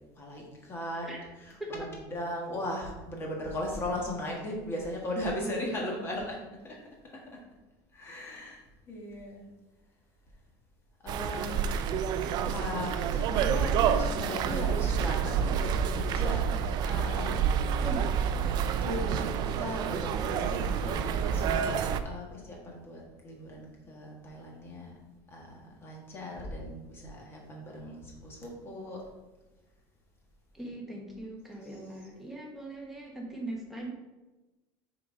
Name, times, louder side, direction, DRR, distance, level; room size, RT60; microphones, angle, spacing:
voice 1, 0.2-6.8 7.0-7.3 7.9-8.6 8.9-9.5 11.0-11.9 12.5-16.4 16.8-17.6 18.6-19.3 19.6-25.0 25.3-29.0 31.6-31.8, left 1 dB, 20° left, -1 dB, 1.6 m, -38 dB
sound 1, 11.1-22.0, right 7 dB, 35° right, 0.4 m, -28 dB
voice 2, 30.5-33.9, right 1 dB, ahead, -2 dB, 1.2 m, -40 dB
6.4 x 4.1 x 5.1 m, 1.1 s
cardioid pair, 165°, 12 cm